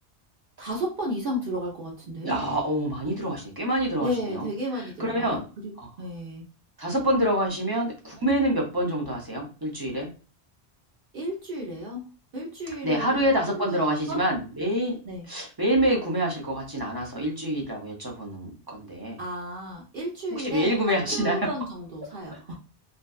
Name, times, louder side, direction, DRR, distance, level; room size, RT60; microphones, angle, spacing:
voice 1, 0.6-2.3 4.0-5.7 6.0-6.5 11.1-12.1 12.3-14.2 15.0-15.3 19.2-22.6, equal, 60° right, -2 dB, 0.8 m, -33 dB
voice 2, 2.2-4.5 5.0-5.4 6.8-10.1 12.8-15.0 15.3-19.2 20.3-21.4, right 1 dB, 25° right, -1 dB, 0.5 m, -26 dB
2.6 x 2.2 x 2.3 m, 0.35 s
omnidirectional pair, 1.1 m